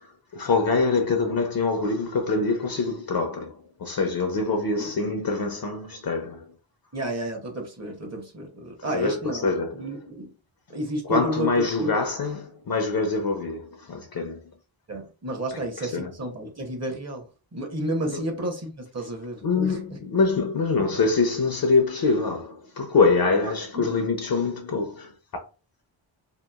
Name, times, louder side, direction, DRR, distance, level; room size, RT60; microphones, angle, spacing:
voice 1, 0.0-6.4 8.8-9.9 11.0-14.5 15.5-16.1 18.1-18.3 19.4-25.1, left 4 dB, 50° left, 0.5 m, -25 dB
voice 2, 6.9-9.5 9.7-10.3 10.7-11.9 14.9-17.3 17.5-20.0 23.7-24.0, right 1 dB, 35° right, 0.8 m, -31 dB
2.9 x 2.4 x 2.3 m
wide cardioid pair, 105°, 47 cm